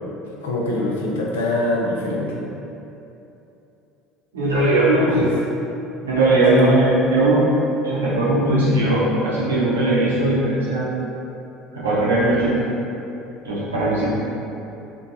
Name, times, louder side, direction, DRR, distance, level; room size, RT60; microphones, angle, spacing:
voice 1, 0.4-2.4 5.1-5.3 6.5-6.8, left 2 dB, 80° left, -2 dB, 0.4 m, -23 dB
voice 2, 4.3-5.2 6.0-7.4 7.8-10.9 11.7-12.6 13.4-14.1, right 2 dB, 85° right, -8 dB, 0.7 m, -19 dB
3.0 x 2.2 x 2.5 m, 2.9 s
hypercardioid pair, 70°, 0 cm